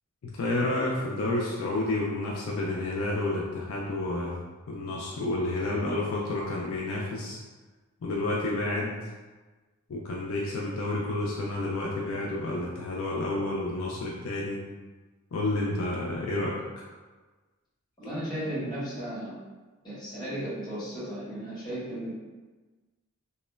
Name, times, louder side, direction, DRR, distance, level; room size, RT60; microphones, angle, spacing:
voice 1, 0.2-4.4 4.7-7.4 8.0-8.9 9.9-14.6 15.3-16.8, left 2 dB, 65° left, -3 dB, 0.4 m, -30 dB
voice 2, 18.0-19.4 19.8-22.1, right 1 dB, 20° left, -11 dB, 1.0 m, -35 dB
2.9 x 2.1 x 2.2 m, 1.3 s
head